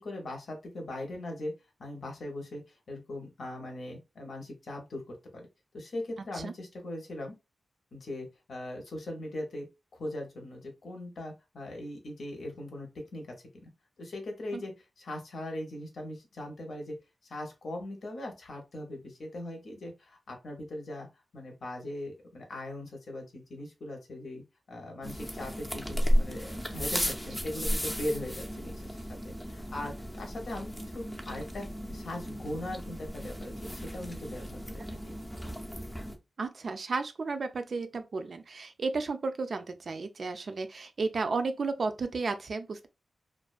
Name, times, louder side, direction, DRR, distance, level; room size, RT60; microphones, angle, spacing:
voice 1, 0.0-1.5 1.8-5.4 5.7-7.3 7.9-9.7 9.9-13.7 14.0-17.0 17.3-21.1 21.3-35.0, left 1 dB, 75° left, 0.8 m, -40 dB
voice 2, 6.2-6.5 14.5-14.6 36.4-42.9, right 4 dB, 60° right, 0.4 m, -33 dB
sound 1, 25.0-36.2, equal, 10° left, 0.5 m, -34 dB
2.4 x 2.2 x 2.4 m
wide cardioid pair, 90°, 0 cm